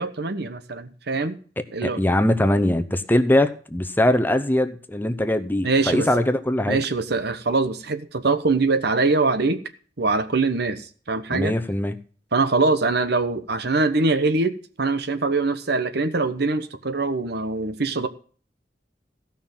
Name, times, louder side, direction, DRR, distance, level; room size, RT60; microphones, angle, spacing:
voice 1, 0.0-1.4 1.7-2.0 5.6-6.1 6.7-9.6 10.0-11.6 12.3-14.5 14.8-18.1, right 3 dB, 65° right, 11 dB, 1.1 m, -23 dB
voice 2, 1.8-6.8 11.3-12.0, left 1 dB, 10° left, 8 dB, 0.7 m, -21 dB
15.5 x 5.9 x 7.3 m, 0.43 s
head